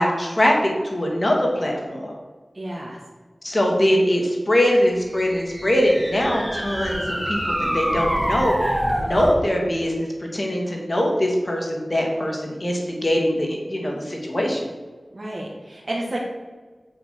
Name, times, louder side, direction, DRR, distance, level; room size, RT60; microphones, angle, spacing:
voice 1, 0.0-2.1 3.4-14.7, equal, 40° left, 0 dB, 2.9 m, -22 dB
voice 2, 2.5-3.0 15.1-16.2, right 1 dB, 50° right, -4 dB, 1.9 m, -30 dB
sound 1, 5.1-9.5, equal, 10° right, 2.2 m, -25 dB
8.1 x 7.1 x 6.8 m, 1.4 s
wide cardioid pair, 60°, 0 cm